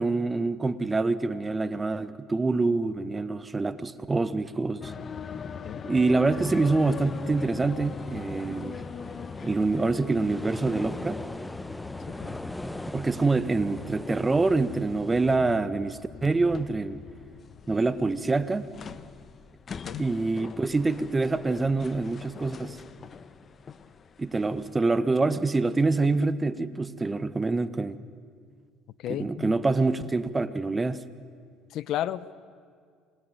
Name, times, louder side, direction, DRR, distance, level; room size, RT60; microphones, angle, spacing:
voice 1, 0.0-4.9 5.8-8.8 9.4-11.2 12.9-17.0 17.7-18.7 20.0-22.8 24.2-28.0 29.1-31.0, right 3 dB, 20° right, 14 dB, 1.3 m, -26 dB
sound 1, 4.8-24.7, left 6 dB, 40° left, 1.2 m, -42 dB
sound 2, 6.3-15.4, left 1 dB, 10° left, 1.0 m, -40 dB
voice 2, 29.0-29.5 31.7-32.5, left 12 dB, 65° left, 17 dB, 0.9 m, -33 dB
27.0 x 21.0 x 9.9 m, 2.1 s
supercardioid pair, 80°, 0 cm